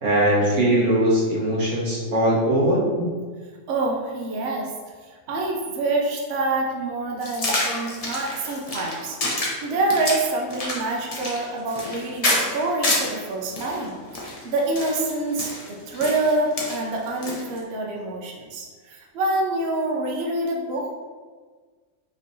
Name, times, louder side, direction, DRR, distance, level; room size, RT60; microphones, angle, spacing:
voice 1, 0.0-3.1, right 1 dB, 50° right, -6 dB, 1.5 m, -20 dB
voice 2, 3.7-4.7 5.0-20.9, right 2 dB, 70° right, -1 dB, 0.6 m, -26 dB
sound 1, 7.2-13.2 13.6-17.6, left 1 dB, 50° left, 0.4 m, -27 dB
5.1 x 3.2 x 2.7 m, 1.5 s
omnidirectional pair, 1.8 m